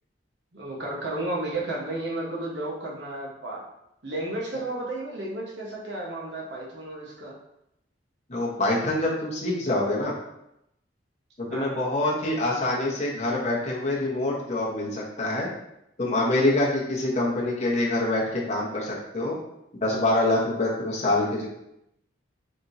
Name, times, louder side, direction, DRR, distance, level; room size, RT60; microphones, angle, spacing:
voice 1, 0.5-3.6 4.0-7.4 11.5-11.7, right 2 dB, 65° right, -3 dB, 1.1 m, -33 dB
voice 2, 8.3-10.1 11.4-15.5 16.0-19.4 19.7-21.5, left 2 dB, 35° left, -4 dB, 0.9 m, -25 dB
4.1 x 3.5 x 2.6 m, 0.81 s
head